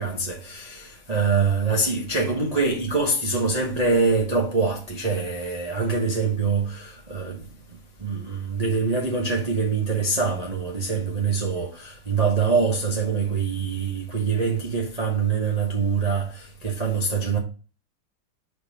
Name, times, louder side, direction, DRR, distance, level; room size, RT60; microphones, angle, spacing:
voice 1, 0.0-7.4 8.0-17.4, right 4 dB, 35° right, 0.6 m, -24 dB
5.1 x 4.5 x 5.3 m
omnidirectional pair, 2.3 m